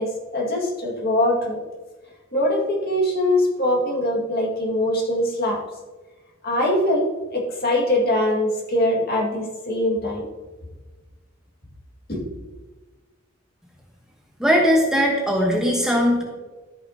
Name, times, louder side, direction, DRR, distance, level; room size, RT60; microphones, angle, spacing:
voice 1, 0.0-1.6 2.3-5.6 6.4-7.1 7.3-10.2 12.1-12.2, left 1 dB, 50° left, -2 dB, 2.0 m, -22 dB
voice 2, 14.4-16.2, equal, 5° right, -2 dB, 1.2 m, -19 dB
13.5 x 5.9 x 2.8 m, 1.3 s
head